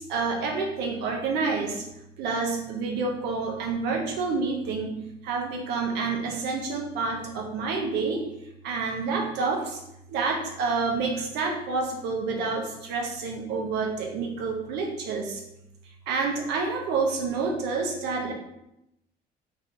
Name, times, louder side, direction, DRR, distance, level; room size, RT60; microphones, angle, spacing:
voice 1, 0.0-1.8 2.2-5.0 5.2-8.2 8.6-9.8 10.1-15.4 16.1-18.3, right 4 dB, 85° right, 2 dB, 0.7 m, -28 dB
3.3 x 2.6 x 2.7 m, 0.84 s
cardioid pair, 110°, 17 cm